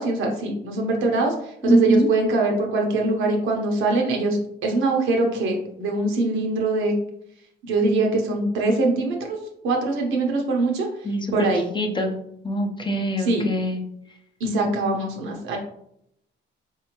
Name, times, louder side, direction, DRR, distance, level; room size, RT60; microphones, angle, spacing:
voice 1, 0.0-1.3 1.6-6.9 7.6-9.4 9.6-10.9 11.3-11.7 13.3-13.4 14.4-15.6, right 2 dB, 85° right, 1 dB, 1.0 m, -23 dB
voice 2, 1.7-2.1 11.0-11.5 11.7-12.2 12.4-13.8, right 1 dB, 25° left, 2 dB, 0.7 m, -23 dB
4.3 x 2.8 x 3.0 m, 0.73 s
cardioid pair, 90°, 20 cm